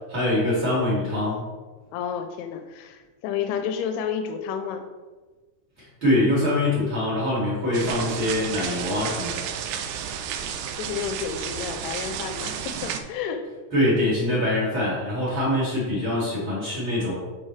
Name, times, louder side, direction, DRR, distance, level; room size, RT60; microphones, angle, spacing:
voice 1, 0.1-1.4 6.0-9.5 13.7-17.1, left 1 dB, 40° right, -7 dB, 1.9 m, -24 dB
voice 2, 1.9-4.9 10.4-13.5, left 7 dB, 85° left, 6 dB, 2.9 m, -31 dB
sound 1, 7.7-13.0, right 8 dB, 85° right, 2.3 m, -32 dB
8.7 x 5.0 x 3.2 m, 1.3 s
omnidirectional pair, 5.2 m